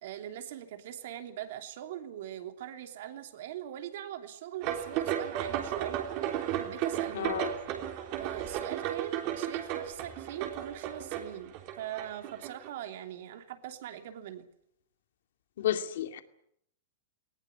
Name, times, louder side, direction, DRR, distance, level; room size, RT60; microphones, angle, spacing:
voice 1, 0.0-6.1 6.5-7.4 8.2-14.4, right 11 dB, 50° right, 3.1 m, -41 dB
sound 1, 4.6-12.7, right 10 dB, 30° right, 3.3 m, -34 dB
voice 2, 7.1-7.5 15.6-16.2, left 11 dB, 55° left, 2.3 m, -31 dB
20.0 x 19.5 x 9.9 m
supercardioid pair, 175°, 0 cm